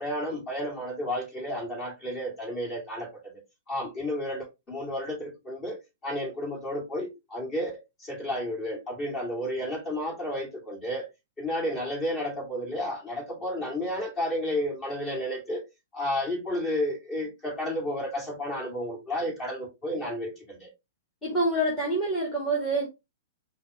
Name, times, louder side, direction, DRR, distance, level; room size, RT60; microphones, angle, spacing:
voice 1, 0.0-3.4 3.7-11.1 11.4-15.6 15.9-20.7, left 1 dB, 25° left, 2.7 m, -32 dB
voice 2, 21.2-22.9, right 1 dB, 10° left, 1.8 m, -26 dB
5.6 x 2.6 x 3.2 m
figure-of-eight pair, 110°, 0 cm